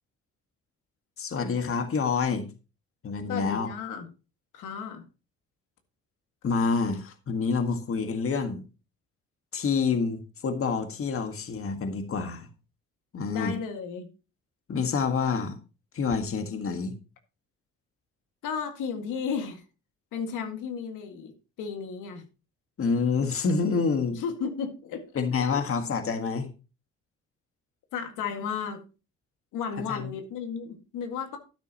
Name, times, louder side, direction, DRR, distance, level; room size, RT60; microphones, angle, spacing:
voice 1, 1.2-2.5 3.0-3.7 6.4-8.6 9.5-12.5 13.1-13.5 14.7-15.6 15.9-17.0 22.8-24.2 25.2-26.5 29.9-30.1, left 5 dB, 45° left, 7 dB, 1.7 m, -27 dB
voice 2, 3.3-4.1 4.5-5.0 13.3-14.1 18.4-19.6 20.1-21.3 21.6-22.2 24.1-25.6 27.9-28.8 29.5-31.4, left 6 dB, 90° left, 5 dB, 2.0 m, -34 dB
12.0 x 9.5 x 2.9 m, 0.31 s
cardioid pair, 90°, 30 cm